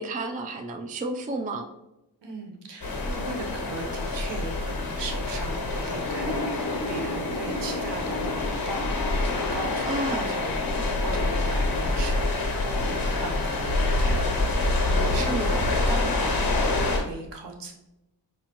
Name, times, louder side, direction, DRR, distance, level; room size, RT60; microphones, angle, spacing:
voice 1, 0.0-1.7 9.9-10.3 15.2-15.5, right 2 dB, 20° right, 5 dB, 0.4 m, -31 dB
voice 2, 2.2-17.7, right 3 dB, 70° right, 3 dB, 0.9 m, -38 dB
sound 1, 2.8-17.0, left 2 dB, 50° left, 1.3 m, -26 dB
sound 2, 6.1-11.8, left 1 dB, 70° left, 0.9 m, -36 dB
4.8 x 2.6 x 2.9 m, 0.91 s
cardioid pair, 65°, 45 cm